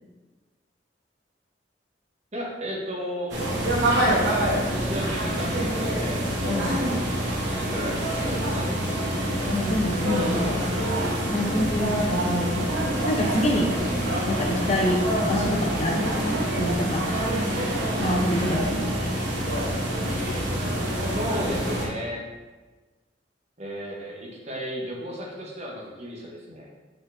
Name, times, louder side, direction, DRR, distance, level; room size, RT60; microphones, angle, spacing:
voice 1, 2.3-3.4 4.7-6.7 7.3-9.3 21.1-22.2 23.6-26.7, equal, 40° right, -2 dB, 0.8 m, -34 dB
sound 1, 3.3-21.9, right 1 dB, 80° right, 0.9 m, -26 dB
voice 2, 9.5-10.6 11.3-12.7 13.0-13.7 14.3-17.1 18.0-19.2, left 1 dB, 40° left, 0 dB, 0.5 m, -26 dB
4.7 x 3.8 x 2.5 m, 1.3 s
head